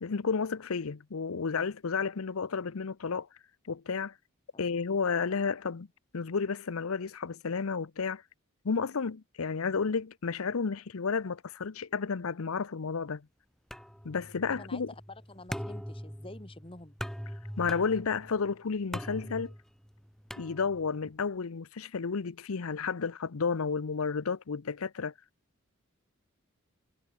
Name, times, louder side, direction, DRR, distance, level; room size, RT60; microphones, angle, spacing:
voice 1, 0.0-3.3 3.7-4.1 4.6-5.9 6.1-8.2 8.6-13.3 14.0-14.9 17.6-19.5 20.4-25.1, left 5 dB, 85° left, 0.7 m, -32 dB
sound 1, 13.7-21.1, equal, ahead, 2.1 m, -42 dB
voice 2, 14.5-17.0, left 2 dB, 25° left, 1.5 m, -48 dB
head